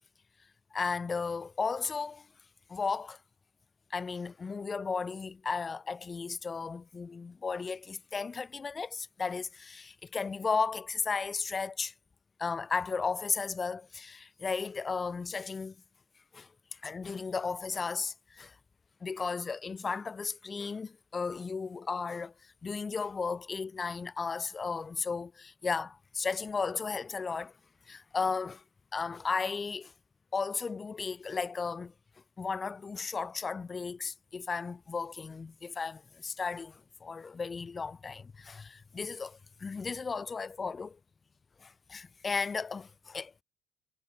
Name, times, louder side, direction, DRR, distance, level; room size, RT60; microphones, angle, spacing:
voice 1, 0.7-2.3 2.7-3.2 3.9-11.9 12.4-15.8 16.3-18.6 19.0-27.5 27.9-28.6 28.9-29.9 30.3-31.9 32.4-41.0 41.6-43.4, left 5 dB, 20° left, 1.9 m, -35 dB
cardioid pair, 135°, 0 cm